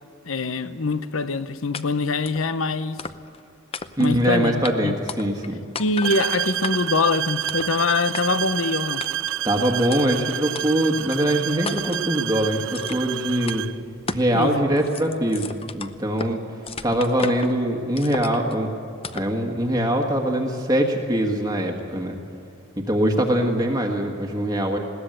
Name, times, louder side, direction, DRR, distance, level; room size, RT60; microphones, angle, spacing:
voice 1, 0.3-3.0 4.0-4.9 5.8-9.0 14.3-14.6, left 3 dB, 70° left, 0.9 m, -24 dB
sound 1, 1.7-1.8 2.3-2.4 3.0-3.4 3.7-4.2 4.6-4.7 5.1-5.5 5.8-6.2 6.6-7.0 7.5-7.7 8.1-8.2 9.0-9.4 9.9-10.0 10.6-10.7 11.1-11.2 11.7-12.1 12.7-13.1 13.5-13.6 14.1-14.3 14.6-16.3 16.7-17.5 18.0-18.6 19.0-19.3, left 4 dB, 30° left, 0.7 m, -34 dB
voice 2, 4.0-5.6 9.4-13.6 14.1-16.4 16.8-18.7 19.1-22.2 22.8-24.8, right 1 dB, 20° right, 1.5 m, -23 dB
sound 2, 6.0-13.8, right 12 dB, 65° right, 0.5 m, -29 dB
20.5 x 17.0 x 8.0 m
head